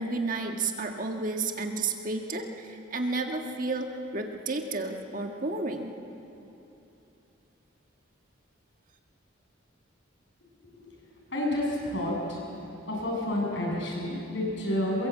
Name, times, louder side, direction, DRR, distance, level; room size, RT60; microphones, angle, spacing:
voice 1, 0.0-5.9, right 3 dB, 40° right, 3 dB, 1.6 m, -31 dB
voice 2, 11.3-12.4 12.9-15.1, left 1 dB, 65° left, -2 dB, 7.2 m, -29 dB
23.0 x 22.5 x 8.3 m, 3.0 s
head